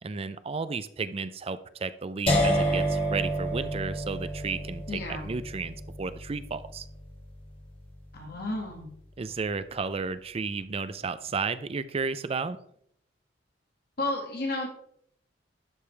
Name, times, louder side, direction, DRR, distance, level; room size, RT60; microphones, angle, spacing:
voice 1, 0.0-6.9 9.2-12.6, right 4 dB, 30° right, 13 dB, 0.4 m, -33 dB
sound 1, 2.3-8.2, equal, 30° left, 1.7 m, -30 dB
voice 2, 4.9-5.3 8.1-8.9 14.0-14.7, left 2 dB, 55° left, 0 dB, 1.8 m, -32 dB
11.5 x 5.1 x 3.3 m, 0.67 s
head